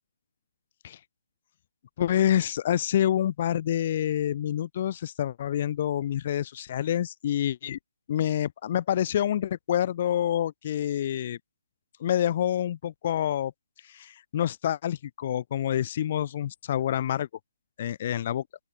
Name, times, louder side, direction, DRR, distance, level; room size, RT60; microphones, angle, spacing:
voice 1, 2.0-7.8 8.1-11.4 12.0-13.5 13.9-17.3 17.8-18.4, left 10 dB, 35° left, 2.3 m, -27 dB
open air
hypercardioid pair, 160°, 0 cm